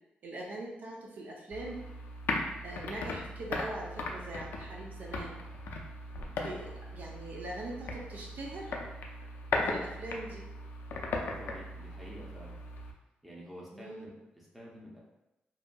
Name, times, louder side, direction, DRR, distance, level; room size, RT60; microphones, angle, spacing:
voice 1, 0.2-1.9 2.6-5.4 6.2-8.8 9.6-10.4 13.7-14.1, right 1 dB, 55° right, -2 dB, 0.4 m, -42 dB
sound 1, 1.5-12.9, left 2 dB, 85° left, 0.4 m, -38 dB
voice 2, 11.1-12.6 13.2-15.0, equal, ahead, -5 dB, 0.6 m, -49 dB
2.7 x 2.5 x 2.2 m, 0.94 s
wide cardioid pair, 160°, 3 cm